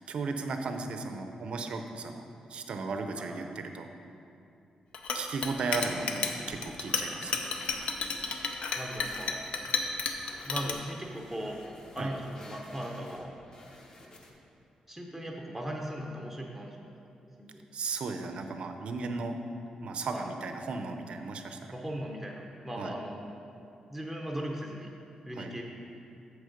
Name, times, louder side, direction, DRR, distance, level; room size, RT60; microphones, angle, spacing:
voice 1, 0.0-2.2 2.5-3.9 5.1-7.4 12.0-12.1 17.7-19.4 19.8-21.8 22.8-22.9 25.4-25.5, right 4 dB, 55° right, 6 dB, 0.6 m, -35 dB
voice 2, 3.2-3.6 5.7-6.5 8.7-9.4 10.4-11.6 11.9-13.3 14.9-16.9 17.4-17.5 20.1-20.3 21.7-23.2 23.9-24.9 25.2-25.6, equal, ahead, 0 dB, 0.6 m, -38 dB
Chink clink, 4.9-10.7, left 5 dB, 70° left, 0.6 m, -32 dB
sound 1, 5.6-14.3, left 1 dB, 35° left, 0.9 m, -51 dB
7.3 x 6.4 x 5.1 m, 2.7 s
wide cardioid pair, 165°, 2 cm